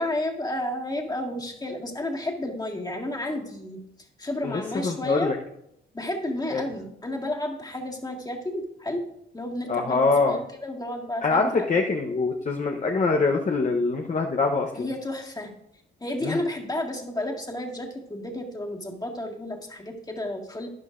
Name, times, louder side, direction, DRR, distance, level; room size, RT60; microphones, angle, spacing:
voice 1, 0.0-3.8 4.2-5.3 5.9-9.0 9.3-11.7 14.8-15.5 16.0-20.7, left 1 dB, 20° left, 1 dB, 1.9 m, -31 dB
voice 2, 4.4-5.4 6.5-6.6 9.7-10.4 11.2-14.9 16.2-16.4, left 3 dB, 40° left, 2 dB, 0.9 m, -24 dB
12.5 x 10.5 x 2.5 m, 0.78 s
cardioid pair, 100°, 20 cm